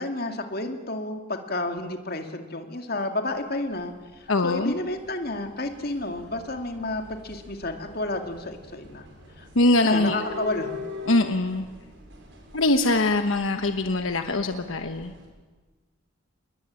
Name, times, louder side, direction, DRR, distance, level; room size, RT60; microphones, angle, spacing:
voice 1, 0.0-9.1 9.4-9.5 9.8-10.8, left 2 dB, 45° left, 5 dB, 2.4 m, -31 dB
sound 1, 3.3-15.3, left 3 dB, 65° right, 6.5 m, -43 dB
voice 2, 4.3-4.7 9.5-10.2 11.1-11.7 12.5-15.1, left 2 dB, 75° left, 7 dB, 1.2 m, -22 dB
27.5 x 21.0 x 8.9 m, 1.3 s
head